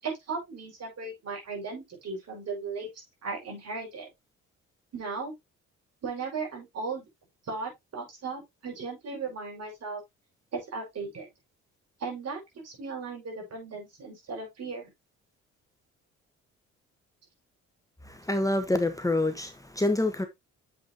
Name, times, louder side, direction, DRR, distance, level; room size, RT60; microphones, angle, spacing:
voice 1, 0.0-2.9 3.2-4.1 4.9-5.3 6.0-7.1 7.4-10.0 10.5-11.3 12.0-14.9, right 4 dB, 55° right, 5.4 m, -36 dB
voice 2, 18.0-20.3, left 2 dB, 10° left, 1.2 m, -27 dB
7.6 x 5.8 x 2.8 m
supercardioid pair, 65°, 30 cm